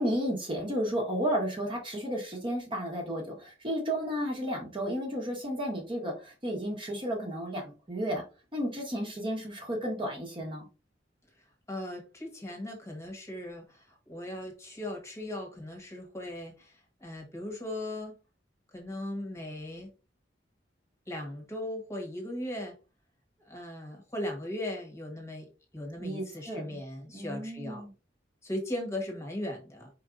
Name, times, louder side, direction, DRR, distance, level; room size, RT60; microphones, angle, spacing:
voice 1, 0.0-8.2 8.5-10.7 26.0-26.8 27.1-27.9, equal, 30° right, 0 dB, 1.3 m, -33 dB
voice 2, 11.4-18.1 18.7-19.9 21.1-22.8 23.4-27.8 28.4-29.9, left 1 dB, 15° left, 1 dB, 1.3 m, -38 dB
4.6 x 4.4 x 2.6 m, 0.33 s
head